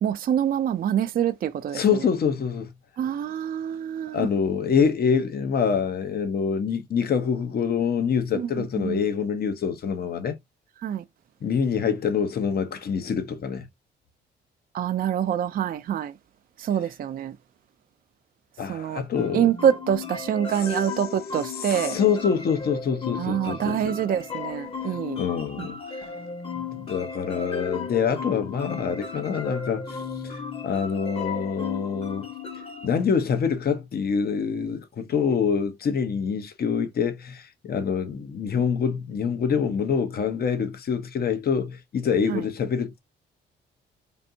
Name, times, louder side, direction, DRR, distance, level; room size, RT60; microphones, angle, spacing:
voice 1, 0.0-2.0 3.0-4.3 8.3-9.0 10.8-11.0 14.7-16.2 16.6-17.4 18.7-19.0 19.3-22.0 23.2-25.2 25.6-25.7 42.3-42.4, right 9 dB, 45° right, 0.5 m, -26 dB
voice 2, 1.7-2.7 4.1-10.4 11.4-13.6 18.6-19.5 21.6-23.9 25.2-25.8 26.8-32.3 32.8-43.0, left 6 dB, 50° left, 0.9 m, -25 dB
sound 1, 19.2-32.9, left 5 dB, 30° left, 1.1 m, -35 dB
5.2 x 2.6 x 2.7 m
cardioid pair, 90°, 20 cm